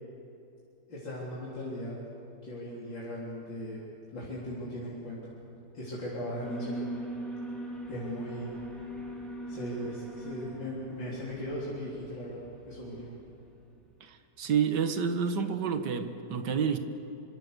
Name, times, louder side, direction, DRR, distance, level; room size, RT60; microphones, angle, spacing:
voice 1, 0.9-1.9 2.4-3.8 4.1-5.3 5.7-6.9 7.9-8.5 9.5-13.1, equal, 80° left, -7 dB, 4.4 m, -38 dB
Alarm, 6.4-13.5, right 1 dB, ahead, 4.6 m, -41 dB
voice 2, 14.0-16.8, right 6 dB, 65° right, 8 dB, 1.9 m, -29 dB
25.5 x 25.0 x 6.8 m, 2.7 s
omnidirectional pair, 2.0 m